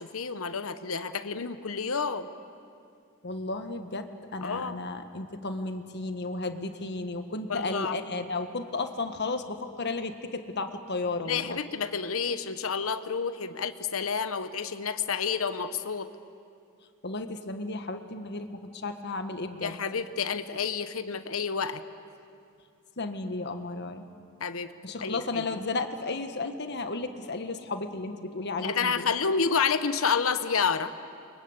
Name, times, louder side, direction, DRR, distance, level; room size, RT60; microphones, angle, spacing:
voice 1, 0.0-2.3 4.4-4.8 7.5-8.0 11.2-16.1 19.6-21.8 24.4-24.7 25.0-25.6 28.6-30.9, left 5 dB, 80° left, 11 dB, 1.0 m, -29 dB
voice 2, 3.2-11.6 17.0-19.8 23.0-24.1 24.8-29.1, left 3 dB, 55° left, 7 dB, 1.6 m, -33 dB
29.5 x 23.5 x 8.1 m, 2.4 s
head